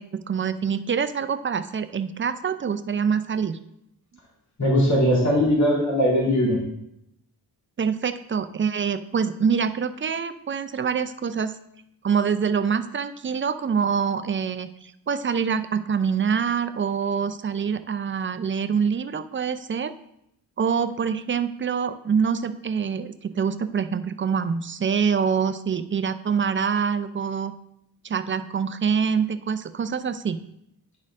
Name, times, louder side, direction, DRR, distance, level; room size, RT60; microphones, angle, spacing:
voice 1, 0.0-3.6 7.8-11.5 12.0-19.9 20.6-27.5 28.0-30.4, right 6 dB, 30° right, 11 dB, 0.4 m, -25 dB
voice 2, 4.6-6.6, equal, 45° left, -5 dB, 2.5 m, -20 dB
10.5 x 4.3 x 3.6 m, 0.80 s
wide cardioid pair, 115°, 39 cm